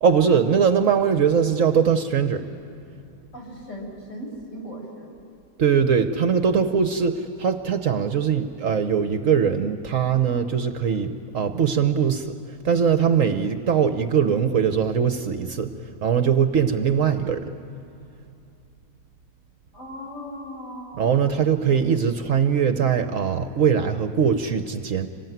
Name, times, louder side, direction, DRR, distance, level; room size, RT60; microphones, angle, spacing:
voice 1, 0.0-2.5 5.6-12.4 12.6-15.7 16.0-17.4 21.0-25.1, right 7 dB, 60° right, 8 dB, 1.2 m, -21 dB
voice 2, 3.3-5.1 19.7-21.2 21.5-21.6, equal, 50° left, -1 dB, 5.8 m, -38 dB
26.0 x 19.5 x 9.3 m, 2.7 s
omnidirectional pair, 1.7 m